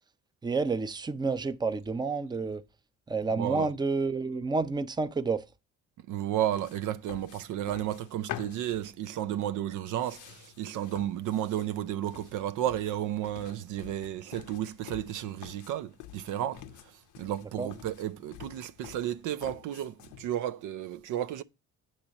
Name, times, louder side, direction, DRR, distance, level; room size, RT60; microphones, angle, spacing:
voice 1, 0.4-2.6 3.1-5.5 17.6-17.7, right 4 dB, 15° right, 0.5 m, -29 dB
voice 2, 3.4-3.7 6.1-16.6 17.2-21.4, right 11 dB, 85° right, 0.5 m, -33 dB
sound 1, 6.5-20.3, left 11 dB, 80° left, 0.7 m, -48 dB
8.5 x 3.0 x 6.3 m
cardioid pair, 90°, 30 cm